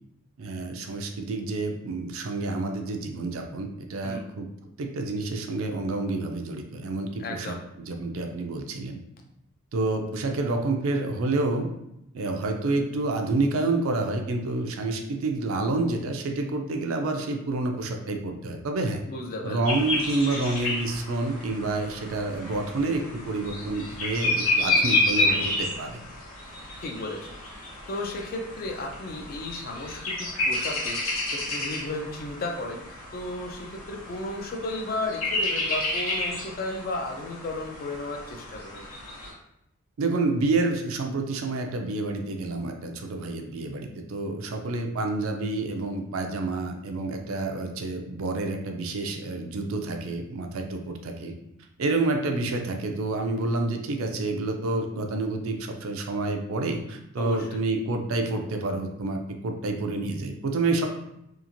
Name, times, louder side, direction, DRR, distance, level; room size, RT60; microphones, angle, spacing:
voice 1, 0.4-4.5 4.8-7.6 7.9-9.0 9.7-11.7 12.1-19.0 19.4-26.0 40.0-51.3 51.8-60.9, right 2 dB, 65° right, 4 dB, 0.4 m, -28 dB
voice 2, 7.2-7.6 19.1-19.6 26.8-27.3 27.9-32.8 33.1-38.9 57.2-57.6, left 2 dB, 40° left, 2 dB, 0.4 m, -34 dB
sound 1, 19.6-39.3, left 2 dB, 75° left, 0.9 m, -30 dB
2.8 x 2.4 x 2.5 m, 0.83 s
head